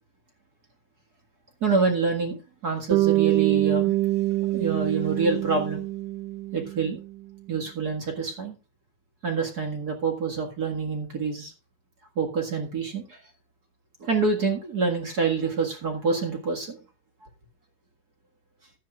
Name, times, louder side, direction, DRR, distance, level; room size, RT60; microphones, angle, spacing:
voice 1, 1.6-3.9 4.5-5.8 6.5-7.0 7.5-8.5 9.2-11.5 12.1-13.2 14.0-16.8, right 4 dB, 40° right, 2 dB, 1.4 m, -26 dB
Bass guitar, 2.9-7.2, right 17 dB, 85° right, 1.8 m, -25 dB
14.5 x 10.5 x 2.4 m, 0.31 s
omnidirectional pair, 4.4 m